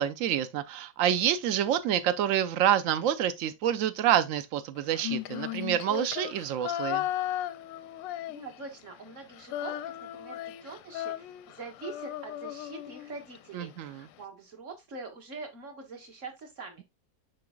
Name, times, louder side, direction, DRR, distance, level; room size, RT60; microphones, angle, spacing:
voice 1, 0.0-7.0 13.5-14.0, right 10 dB, 75° right, 0.7 m, -27 dB
Female singing, 4.9-8.8 9.1-13.4, left 12 dB, 85° left, 1.3 m, -36 dB
voice 2, 8.3-16.8, right 4 dB, 45° right, 1.8 m, -44 dB
7.6 x 5.4 x 2.3 m
omnidirectional pair, 1.9 m